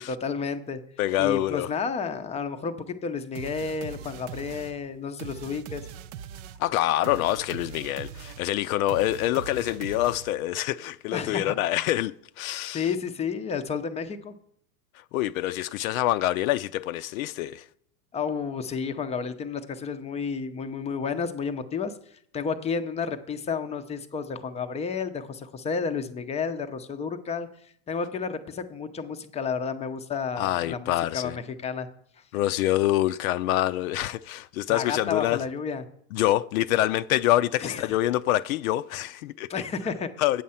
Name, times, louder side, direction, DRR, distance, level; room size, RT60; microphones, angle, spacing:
voice 1, 0.0-0.8 1.2-5.8 11.1-11.7 12.7-14.3 18.1-21.9 22.3-27.5 27.9-31.9 34.7-35.8 37.6-37.8 39.5-40.1, left 5 dB, 15° left, 0.5 m, -31 dB
voice 2, 1.0-1.7 6.6-12.9 14.9-17.7 30.4-31.4 32.3-35.4 36.1-39.5 40.2-40.4, left 14 dB, 75° left, 0.5 m, -26 dB
sound 1, 3.3-10.5, right 8 dB, 55° right, 0.6 m, -41 dB
8.5 x 7.5 x 5.6 m
supercardioid pair, 130°, 42 cm